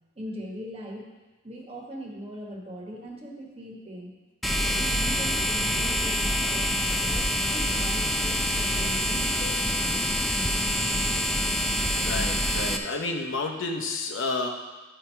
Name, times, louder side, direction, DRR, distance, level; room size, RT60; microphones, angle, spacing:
voice 1, 0.2-1.1 1.4-4.1 4.7-10.0, equal, 30° right, -1 dB, 1.3 m, -40 dB
sound 1, 4.4-12.8, equal, ahead, 0.5 m, -26 dB
voice 2, 11.9-14.5, left 3 dB, 75° left, 3 dB, 0.9 m, -30 dB
11.5 x 4.5 x 4.6 m, 1.2 s
head